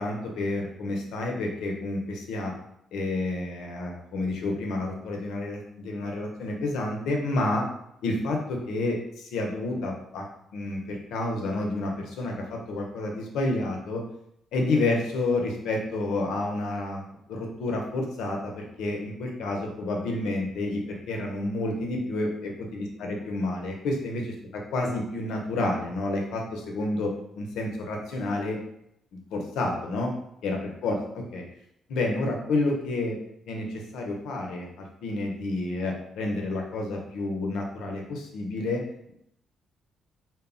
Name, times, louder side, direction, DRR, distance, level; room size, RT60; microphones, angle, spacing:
voice 1, 0.0-2.5 2.9-7.7 8.0-10.3 10.5-14.0 14.5-28.6 29.1-30.1 30.4-31.4 31.9-33.2 33.5-38.8, left 2 dB, 80° left, 1 dB, 0.5 m, -30 dB
2.1 x 2.0 x 3.6 m, 0.76 s
cardioid pair, 90°, 0 cm